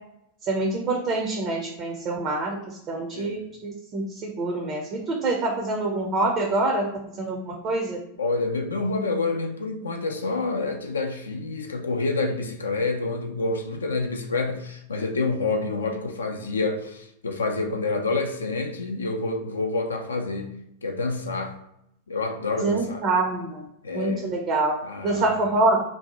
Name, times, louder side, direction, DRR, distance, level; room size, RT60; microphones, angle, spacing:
voice 1, 0.5-2.6 2.9-4.8 5.1-6.8 7.2-8.0 22.6-23.6 23.9-24.7 25.0-25.8, right 2 dB, 35° right, 0 dB, 0.5 m, -25 dB
voice 2, 8.2-20.6 20.8-21.5 22.1-23.1 23.8-24.3 24.8-25.5, left 3 dB, 75° left, 4 dB, 0.3 m, -28 dB
2.6 x 2.1 x 2.9 m, 0.79 s
figure-of-eight pair, 90°, 0 cm